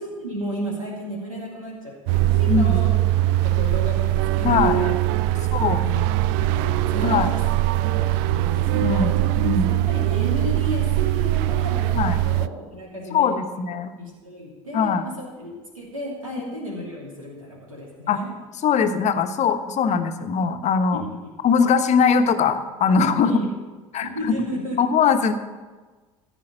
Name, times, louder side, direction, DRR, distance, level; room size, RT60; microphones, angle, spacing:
voice 1, 0.0-2.9 3.3-4.0 4.3-4.9 5.3-5.4 5.8-7.3 8.0-9.2 9.7-13.3 14.0-18.3 20.9-21.1 23.2-23.4 24.0-24.8, equal, 90° right, -3 dB, 2.9 m, -33 dB
sound 1, 2.1-12.5, right 15 dB, 60° right, 0.4 m, -21 dB
voice 2, 2.5-2.8 4.4-4.8 5.5-5.9 7.0-7.3 8.7-9.2 9.4-9.7 11.9-12.2 13.1-13.9 14.7-15.0 18.1-18.2 18.6-21.0 21.4-23.3 23.9-24.4 24.8-25.3, left 6 dB, 45° left, 8 dB, 1.1 m, -21 dB
15.0 x 5.0 x 9.0 m, 1.3 s
figure-of-eight pair, 65°, 17 cm